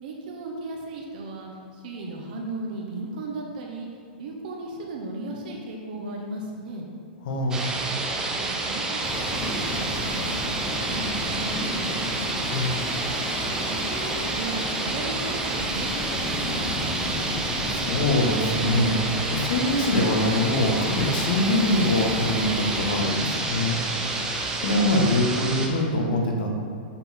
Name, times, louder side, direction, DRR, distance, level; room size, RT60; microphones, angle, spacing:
voice 1, 0.0-3.9 4.2-6.9 8.4-12.1 13.7-17.2, right 2 dB, 60° right, 0 dB, 1.1 m, -36 dB
voice 2, 7.2-7.7 12.5-12.7 17.6-23.8 24.1-26.5, left 1 dB, 65° left, 1 dB, 1.4 m, -24 dB
sound 1, 7.5-25.7, right 2 dB, 10° right, 0.6 m, -29 dB
sound 2, 9.0-25.2, left 2 dB, 30° left, 0.7 m, -35 dB
7.8 x 4.1 x 4.3 m, 2.3 s
hypercardioid pair, 155°, 5 cm